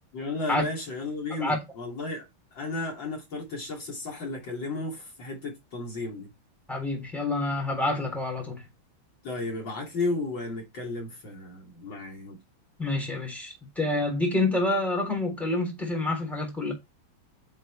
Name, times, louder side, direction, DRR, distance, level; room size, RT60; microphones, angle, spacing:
voice 1, 0.1-2.2 2.5-6.3 9.2-12.4, left 3 dB, 65° left, 3.4 m, -33 dB
voice 2, 6.7-8.6 12.8-16.7, left 2 dB, ahead, 3.6 m, -28 dB
9.0 x 5.5 x 3.4 m
omnidirectional pair, 2.3 m